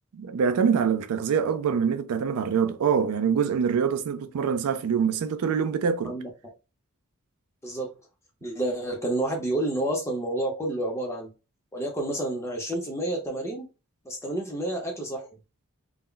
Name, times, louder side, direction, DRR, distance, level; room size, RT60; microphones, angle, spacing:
voice 1, 0.1-6.2, right 6 dB, 85° right, 0.4 m, -25 dB
voice 2, 8.4-11.3 11.7-13.7 14.0-15.3, right 1 dB, 10° left, 0.7 m, -29 dB
2.2 x 2.1 x 3.7 m
head